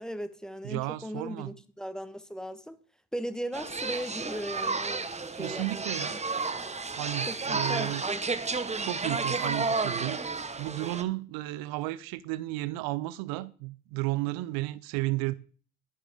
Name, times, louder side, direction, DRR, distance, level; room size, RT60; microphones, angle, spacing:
voice 1, 0.0-2.8 3.1-5.8 6.1-6.2 7.3-8.2, equal, ahead, 1.3 m, -38 dB
voice 2, 0.6-1.5 5.4-6.2 7.0-8.0 8.8-15.3, right 18 dB, 65° right, 0.7 m, -33 dB
sound 1, 3.5-11.0, right 4 dB, 15° right, 1.2 m, -32 dB
11.0 x 10.5 x 3.6 m
hypercardioid pair, 60°, 39 cm